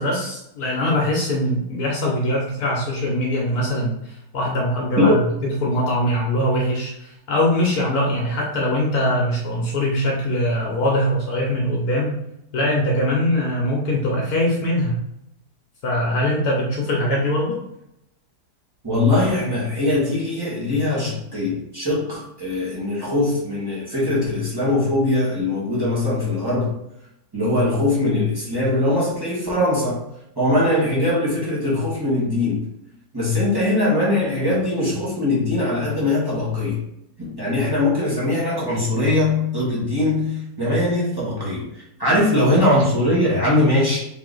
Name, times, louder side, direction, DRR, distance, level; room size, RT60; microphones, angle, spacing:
voice 1, 0.0-5.1 5.4-12.1 12.5-15.0 15.8-17.6, left 1 dB, 65° left, -2 dB, 1.3 m, -22 dB
voice 2, 18.8-26.7 27.3-30.0 30.4-32.6 33.1-36.8 37.2-44.0, left 2 dB, 15° right, -7 dB, 1.3 m, -21 dB
3.8 x 2.9 x 3.8 m, 0.81 s
omnidirectional pair, 1.8 m